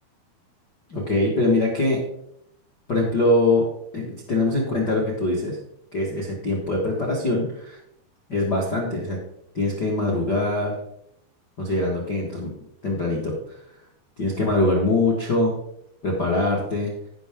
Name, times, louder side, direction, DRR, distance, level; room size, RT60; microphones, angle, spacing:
voice 1, 0.9-2.0 2.9-3.7 3.9-5.6 5.9-7.8 8.3-9.2 9.5-10.8 11.6-12.5 12.8-13.4 14.2-15.5 16.0-16.9, left 2 dB, 80° left, -2 dB, 0.9 m, -23 dB
16.0 x 5.7 x 3.6 m, 0.77 s
omnidirectional pair, 4.6 m